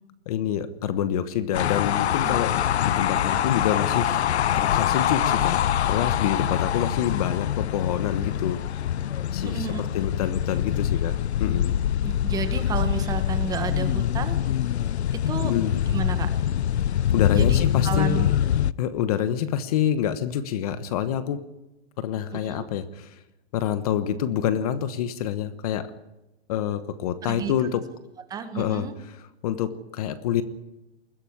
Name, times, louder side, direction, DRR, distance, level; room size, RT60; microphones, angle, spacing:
voice 1, 0.3-8.9 9.3-11.7 15.4-15.7 16.9-18.3 18.8-21.5 22.0-23.2 23.5-25.9 26.5-27.9 28.5-30.4, left 10 dB, 35° left, 13 dB, 1.2 m, -27 dB
sound 1, 1.5-18.7, left 10 dB, 90° left, 0.7 m, -24 dB
voice 2, 9.4-9.8 12.0-14.4 15.3-15.5 15.9-16.3 17.3-17.6 17.8-18.3 22.4-22.6 27.3-27.5 28.3-28.9, right 6 dB, 10° right, 8 dB, 1.4 m, -31 dB
21.0 x 15.0 x 9.8 m, 0.97 s
hypercardioid pair, 160°, 32 cm